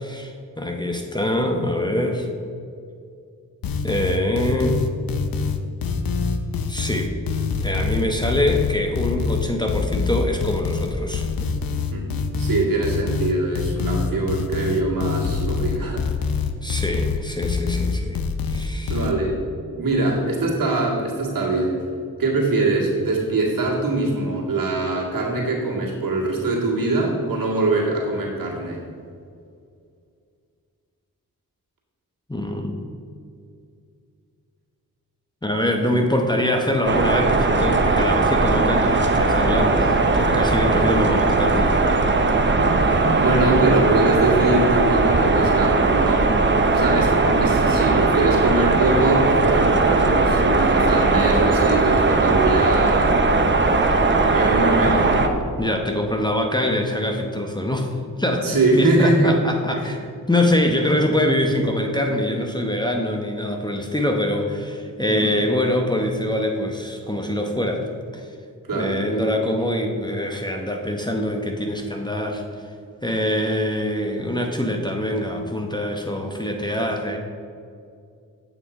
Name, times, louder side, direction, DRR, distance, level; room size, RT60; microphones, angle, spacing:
voice 1, 0.0-2.3 3.8-4.8 6.7-7.1 7.6-11.3 16.6-18.2 18.5-19.0 32.3-32.8 35.4-41.8 55.6-60.0 60.3-67.9 68.1-68.3 68.7-72.4 73.0-77.2, left 1 dB, 10° left, 2 dB, 0.9 m, -24 dB
sound 1, 3.6-19.1, left 5 dB, 75° left, 0.7 m, -25 dB
voice 2, 12.4-16.0 18.9-19.4 19.7-21.8 22.2-28.8 42.3-46.3 46.7-53.2 54.1-55.3 58.4-59.3 59.7-59.9 65.0-65.3 68.7-69.0, right 2 dB, 65° right, -3 dB, 1.9 m, -23 dB
sound 2, 36.9-55.3, right 3 dB, 30° right, 0.8 m, -18 dB
8.0 x 5.7 x 4.3 m, 2.4 s
cardioid pair, 50°, 36 cm